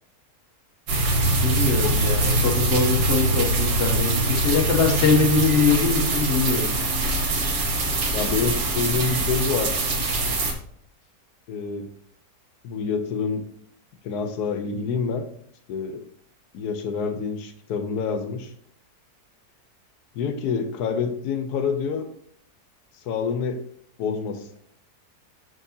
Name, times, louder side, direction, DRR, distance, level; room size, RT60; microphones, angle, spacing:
sound 1, 0.9-10.5, right 2 dB, 90° right, 1.8 m, -23 dB
voice 1, 1.4-6.7, left 4 dB, 45° left, 2 dB, 1.0 m, -22 dB
voice 2, 8.1-9.8 11.5-11.9 12.6-13.4 14.0-15.3 15.7-16.0 16.5-18.5 20.1-22.1 23.0-23.6 24.0-24.5, left 5 dB, 85° left, 8 dB, 1.3 m, -27 dB
6.4 x 5.9 x 2.7 m, 0.64 s
omnidirectional pair, 1.7 m